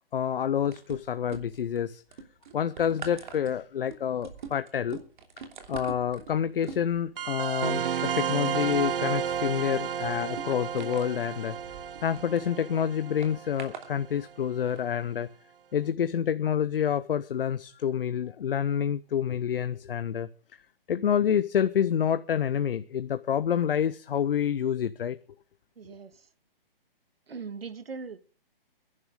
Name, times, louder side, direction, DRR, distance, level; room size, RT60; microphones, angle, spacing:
voice 1, 0.1-2.0 2.5-5.0 5.7-11.6 12.0-15.3 15.7-20.3 20.9-25.2, left 8 dB, 70° left, 0.8 m, -28 dB
sound 1, 0.7-1.8 2.1-12.5 13.2-13.9 14.6-14.8, right 6 dB, 55° right, 3.0 m, -44 dB
sound 2, 7.2-14.3, right 8 dB, 70° right, 0.8 m, -32 dB
voice 2, 25.8-26.2 27.3-28.2, right 5 dB, 85° right, 1.7 m, -40 dB
22.0 x 11.0 x 3.6 m
hypercardioid pair, 155°, 29 cm